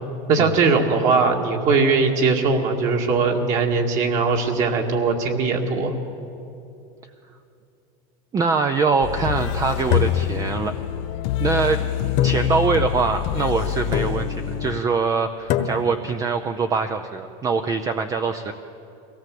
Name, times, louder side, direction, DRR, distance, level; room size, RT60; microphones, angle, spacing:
voice 1, 0.3-5.9, right 4 dB, 45° right, 1 dB, 2.1 m, -20 dB
voice 2, 8.3-10.7 11.4-11.8 12.2-18.5, right 4 dB, 20° right, 7 dB, 0.6 m, -23 dB
sound 1, 9.0-14.8, left 11 dB, 60° left, 0.6 m, -27 dB
sound 2, 9.9-11.1 12.2-13.0 13.9-14.5 15.5-16.2, left 10 dB, 45° left, 1.3 m, -25 dB
23.5 x 17.5 x 7.7 m, 2.7 s
supercardioid pair, 155°, 18 cm